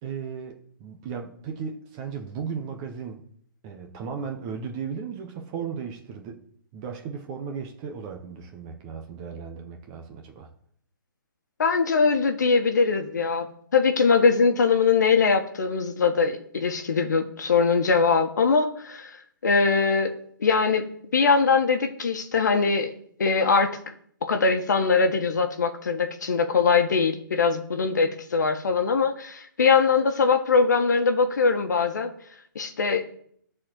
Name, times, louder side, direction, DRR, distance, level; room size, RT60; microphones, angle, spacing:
voice 1, 0.0-3.2 3.6-6.4 6.7-10.5, right 6 dB, 15° right, 3 dB, 0.6 m, -36 dB
voice 2, 11.6-20.1 20.4-20.9 21.1-23.8 24.2-32.1 32.5-33.2, left 5 dB, 55° left, 7 dB, 1.3 m, -22 dB
13.0 x 4.3 x 7.5 m, 0.65 s
hypercardioid pair, 175°, 11 cm